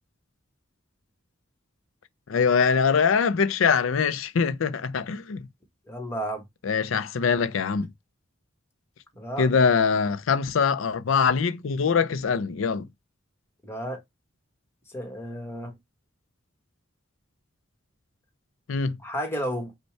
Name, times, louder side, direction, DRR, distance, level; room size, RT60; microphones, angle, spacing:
voice 1, 2.3-5.5 6.6-7.9 9.4-12.9 18.7-19.0, left 6 dB, 75° left, 0.5 m, -23 dB
voice 2, 5.9-6.4 9.1-9.6 13.6-14.0 14.9-15.7 19.0-19.7, equal, 10° left, 1.1 m, -32 dB
5.3 x 2.2 x 4.4 m
head